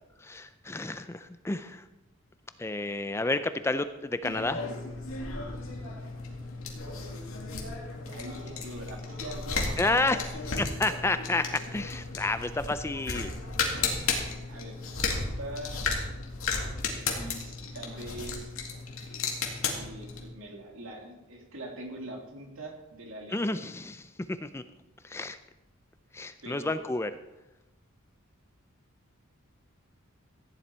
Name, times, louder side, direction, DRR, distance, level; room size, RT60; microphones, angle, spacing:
voice 1, 0.2-1.8 2.6-4.6 9.8-10.3 10.6-13.3 23.3-24.6 25.0-25.4 26.1-27.1, left 2 dB, 10° left, 11 dB, 0.4 m, -30 dB
sound 1, 4.2-20.3, left 4 dB, 75° left, 2.2 m, -34 dB
voice 2, 8.0-10.3 14.0-14.8 15.1-15.9 17.0-18.6 19.7-23.6 26.4-26.8, right 1 dB, 70° right, 2 dB, 2.4 m, -43 dB
15.0 x 10.0 x 4.4 m, 1.0 s
head